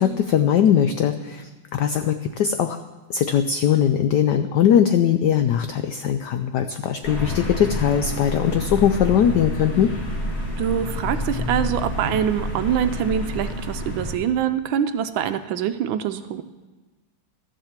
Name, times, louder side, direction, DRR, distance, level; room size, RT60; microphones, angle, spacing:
voice 1, 0.0-2.8 3.1-9.9, left 9 dB, 85° left, 9 dB, 0.9 m, -20 dB
sound 1, 7.0-14.2, left 1 dB, 45° left, 2.3 m, -29 dB
voice 2, 10.6-16.4, right 9 dB, 75° right, 10 dB, 1.2 m, -24 dB
13.0 x 7.6 x 7.2 m, 1.3 s
omnidirectional pair, 2.4 m